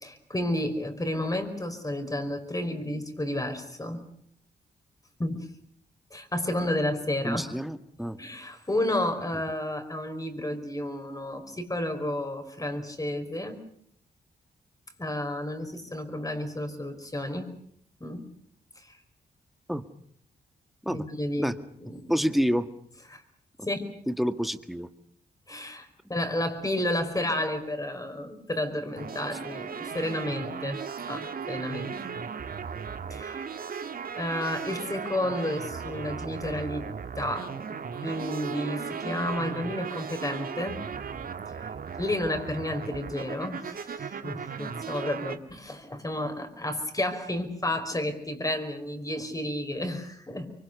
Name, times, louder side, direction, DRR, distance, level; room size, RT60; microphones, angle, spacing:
voice 1, 0.0-4.0 5.2-5.5 6.1-7.4 8.2-13.6 15.0-17.6 18.0-18.2 18.8-19.0 20.9-21.5 21.8-22.1 23.1-23.2 23.6-23.9 25.5-31.9 33.1-33.4 34.2-36.8 37.2-37.7 38.0-40.8 42.0-50.5, left 1 dB, 20° left, 7 dB, 5.3 m, -31 dB
voice 2, 7.2-8.2 19.7-19.8 20.8-21.0 21.4-21.5 22.1-22.7 24.1-24.9, equal, ahead, 10 dB, 1.8 m, -28 dB
sound 1, 29.0-45.4, right 6 dB, 60° right, 1.8 m, -37 dB
25.0 x 24.0 x 6.9 m, 0.66 s
cardioid pair, 75°, 17 cm